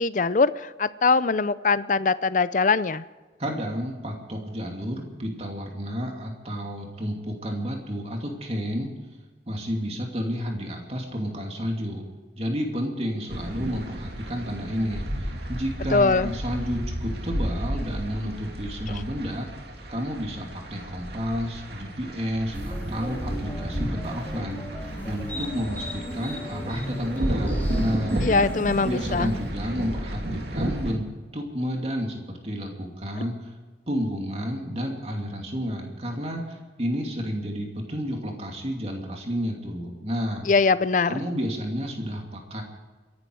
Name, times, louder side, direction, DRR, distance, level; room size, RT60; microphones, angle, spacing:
voice 1, 0.0-3.0 15.9-16.3 18.9-19.0 28.2-29.3 40.4-41.2, left 4 dB, 45° left, 16 dB, 0.5 m, -22 dB
voice 2, 3.4-8.9 9.5-12.0 12.4-19.5 19.9-24.6 25.0-28.3 28.8-31.1 31.3-33.5 33.9-40.5 41.1-42.6, equal, 35° right, 1 dB, 2.7 m, -31 dB
sound 1, 13.3-30.9, right 1 dB, 65° right, 2.7 m, -32 dB
sound 2, 22.5-29.5, equal, 10° left, 3.3 m, -36 dB
26.5 x 11.5 x 4.8 m, 1.3 s
head